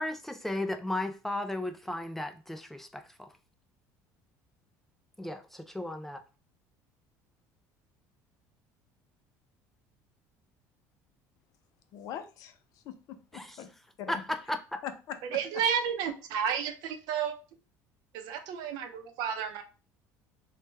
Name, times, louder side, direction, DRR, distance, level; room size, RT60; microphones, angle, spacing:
voice 1, 0.0-3.3 5.2-6.2 13.3-13.6 14.1-14.8, left 1 dB, 5° left, 0.3 m, -35 dB
voice 2, 11.9-12.6 12.8-13.7 14.0-14.2 14.8-15.4, left 9 dB, 60° left, 0.5 m, -41 dB
voice 3, 15.3-17.3 18.1-19.6, right 7 dB, 75° right, 0.6 m, -31 dB
3.1 x 2.2 x 3.2 m
cardioid pair, 125°, 7 cm